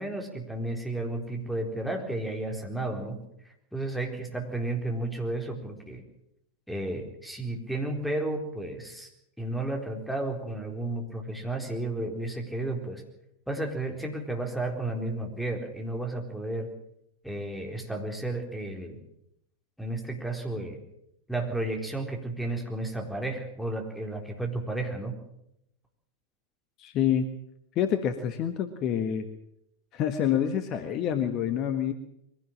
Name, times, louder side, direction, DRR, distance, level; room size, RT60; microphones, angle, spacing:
voice 1, 0.0-3.2 3.7-6.0 6.7-9.1 9.4-13.0 13.5-16.7 17.2-19.0 19.8-20.8 21.3-25.2, right 2 dB, ahead, 2 dB, 4.1 m, -32 dB
voice 2, 26.8-27.3 27.7-29.2 29.9-31.9, left 9 dB, 35° left, 9 dB, 1.5 m, -27 dB
23.0 x 17.0 x 7.4 m, 0.80 s
figure-of-eight pair, 90°, 0 cm